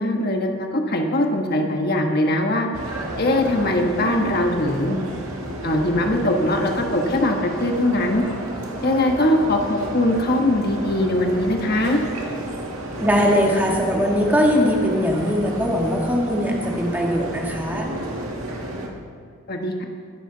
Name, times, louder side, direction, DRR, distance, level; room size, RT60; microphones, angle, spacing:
voice 1, 0.0-2.7 3.2-5.0 5.6-8.2 8.8-12.0 19.5-19.8, left 1 dB, 45° left, 2 dB, 1.2 m, -21 dB
sound 1, 2.7-18.9, right 1 dB, 80° right, 1.9 m, -31 dB
voice 2, 13.0-17.9, equal, 10° right, -1 dB, 1.6 m, -21 dB
21.0 x 11.0 x 3.9 m, 2.1 s
head